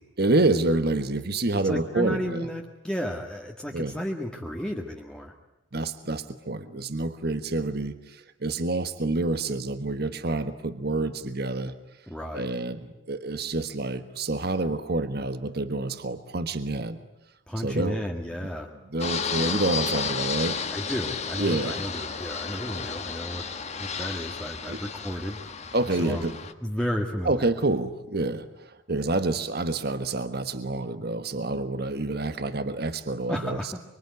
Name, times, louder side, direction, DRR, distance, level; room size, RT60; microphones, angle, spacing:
voice 1, 0.2-2.5 3.7-3.9 5.7-11.7 12.3-17.0 17.6-18.1 18.9-20.6 21.4-21.8 24.7-24.8 25.7-26.4 27.2-33.7, right 2 dB, 50° right, 10 dB, 1.4 m, -28 dB
voice 2, 1.6-5.3 12.1-12.5 17.5-18.7 20.7-23.5 23.8-25.4 26.0-27.5 33.3-33.8, equal, 5° left, 1 dB, 1.8 m, -33 dB
Fixed-wing aircraft airplane, 19.0-26.5, left 5 dB, 35° left, 1.5 m, -32 dB
25.0 x 25.0 x 9.5 m, 0.88 s
head